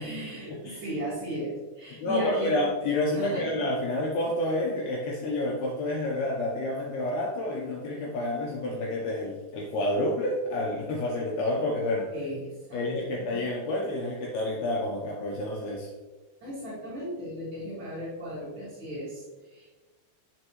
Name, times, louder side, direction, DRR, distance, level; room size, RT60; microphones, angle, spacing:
voice 1, 0.0-2.6 3.1-3.5 12.1-13.1 16.4-19.7, right 1 dB, 55° right, -10 dB, 1.3 m, -36 dB
voice 2, 1.9-12.1 12.7-15.9, left 1 dB, 80° left, -1 dB, 2.3 m, -29 dB
7.8 x 6.4 x 3.0 m, 1.3 s
omnidirectional pair, 5.3 m